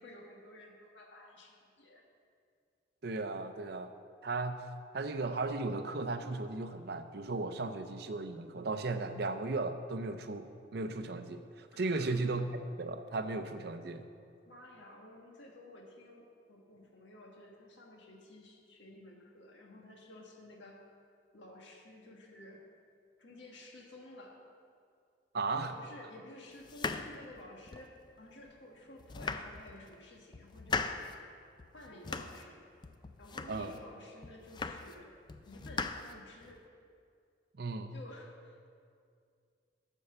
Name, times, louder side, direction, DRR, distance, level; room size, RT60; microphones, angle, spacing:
voice 1, 0.0-2.0 11.7-12.2 14.5-20.8 21.3-22.6 23.2-24.4 25.5-31.1 31.7-32.7 33.2-35.1 35.4-36.6 37.9-38.7, left 1 dB, 85° left, 0 dB, 1.6 m, -53 dB
voice 2, 3.0-3.9 4.2-4.6 4.9-14.1 25.3-25.7 33.5-33.7 37.5-37.9, right 3 dB, 60° right, 8 dB, 0.6 m, -36 dB
sound 1, 26.6-28.0 28.5-28.6 29.0-29.9 30.3-31.2 31.6-32.5 32.8-33.8 34.2-35.0 35.3-36.6, left 4 dB, 25° left, 0.3 m, -39 dB
12.0 x 4.6 x 6.9 m, 2.3 s
head